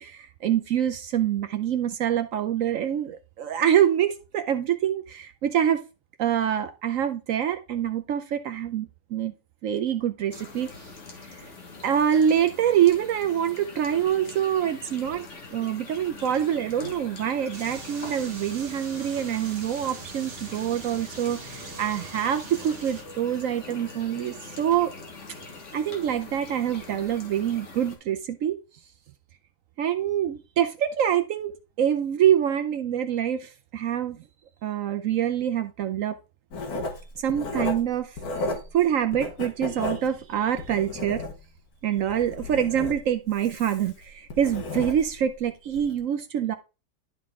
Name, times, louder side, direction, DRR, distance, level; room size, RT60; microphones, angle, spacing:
voice 1, 0.0-5.8 6.2-9.3 9.6-10.7 11.2-11.5 11.8-15.3 15.5-24.9 25.7-28.6 29.8-34.2 34.6-36.2 37.2-38.2 38.7-41.2 41.8-46.5, right 9 dB, 70° right, 8 dB, 0.8 m, -25 dB
sound 1, 10.3-28.0, left 3 dB, 50° left, 1.7 m, -43 dB
sound 2, 17.5-23.0, right 4 dB, 50° right, 1.3 m, -42 dB
Writing, 36.5-38.8 39.1-41.6 42.0-45.3 45.7-45.9, left 2 dB, 65° left, 1.7 m, -34 dB
11.5 x 4.0 x 3.6 m, 0.31 s
omnidirectional pair, 1.8 m